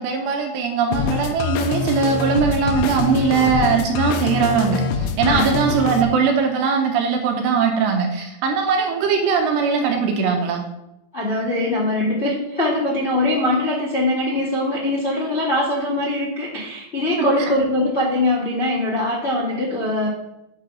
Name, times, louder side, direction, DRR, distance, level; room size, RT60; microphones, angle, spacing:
voice 1, 0.0-10.7 17.2-17.3, right 5 dB, 75° right, 2 dB, 2.8 m, -20 dB
sound 1, 0.9-6.0, left 6 dB, 90° left, 3.2 m, -25 dB
voice 2, 5.2-5.5 11.1-20.1, left 1 dB, 70° left, -7 dB, 0.6 m, -22 dB
8.7 x 4.5 x 6.2 m, 0.89 s
omnidirectional pair, 5.5 m